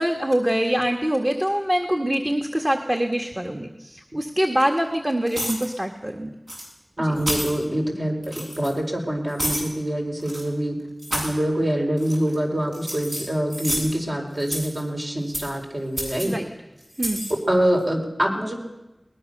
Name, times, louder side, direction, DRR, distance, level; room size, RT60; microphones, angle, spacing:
voice 1, 0.0-6.3 7.0-7.1 16.2-16.5 17.0-17.2, equal, 25° right, 2 dB, 1.7 m, -24 dB
sound 1, 5.3-5.7 6.5-6.7 7.2-7.6 8.2-8.7 9.4-9.7 10.2-10.4 11.0-11.3 12.0-12.4 12.7-13.9 14.4-14.8 15.3-15.6 16.0-16.3 16.9-17.3, equal, 70° right, 7.6 m, -29 dB
voice 2, 7.0-10.8 11.1-16.4 17.5-18.6, right 1 dB, 50° right, 1 dB, 4.8 m, -25 dB
21.5 x 20.0 x 6.8 m, 1.0 s
wide cardioid pair, 50°, 0 cm